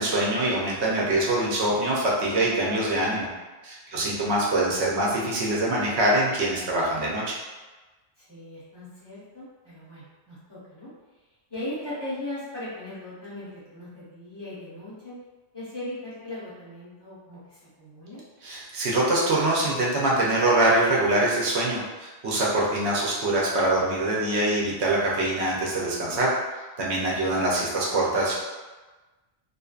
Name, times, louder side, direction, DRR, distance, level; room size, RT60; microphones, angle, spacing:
voice 1, 0.0-3.3 3.6-7.4 18.4-26.3 26.8-28.4, right 1 dB, 75° right, -4 dB, 0.9 m, -24 dB
voice 2, 3.9-4.3 8.2-10.9 11.5-15.1 15.5-18.2, left 1 dB, 25° left, -12 dB, 1.0 m, -38 dB
2.6 x 2.4 x 2.3 m, 1.2 s
omnidirectional pair, 1.1 m